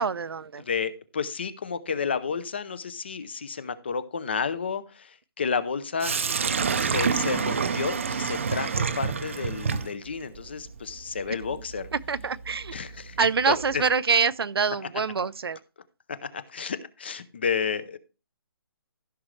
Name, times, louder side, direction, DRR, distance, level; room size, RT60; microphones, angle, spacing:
voice 1, 0.0-0.6 12.1-12.7 13.2-15.6, right 5 dB, 75° right, 0.7 m, -25 dB
voice 2, 0.6-6.2 6.7-11.9 12.7-13.2 13.4-13.8 16.2-18.0, left 5 dB, 25° left, 0.6 m, -31 dB
Sink (filling or washing), 6.0-13.9, right 6 dB, 30° right, 0.6 m, -29 dB
15.0 x 6.1 x 3.2 m
hypercardioid pair, 180°, 13 cm